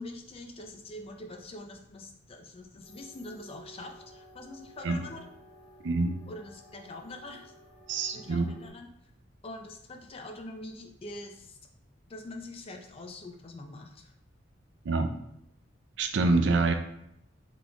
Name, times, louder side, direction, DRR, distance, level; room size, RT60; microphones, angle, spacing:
voice 1, 0.0-5.2 6.3-7.5 8.1-8.9 9.4-11.6 12.1-14.1, left 2 dB, 30° left, 4 dB, 0.4 m, -44 dB
sound 1, 2.8-8.7, right 1 dB, 80° left, 1.2 m, -54 dB
voice 2, 5.8-6.1 7.9-8.4 14.8-15.1 16.0-16.7, right 3 dB, 65° right, 6 dB, 0.4 m, -25 dB
3.8 x 3.5 x 2.3 m, 0.77 s
head